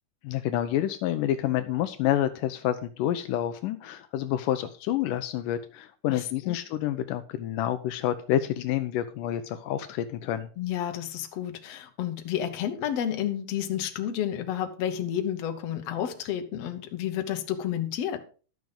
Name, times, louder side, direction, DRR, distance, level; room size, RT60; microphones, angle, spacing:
voice 1, 0.2-10.5, left 12 dB, 80° left, 10 dB, 2.2 m, -28 dB
voice 2, 6.1-6.6 10.6-18.2, left 10 dB, 60° left, 6 dB, 2.0 m, -31 dB
12.0 x 6.3 x 5.2 m, 0.38 s
omnidirectional pair, 3.8 m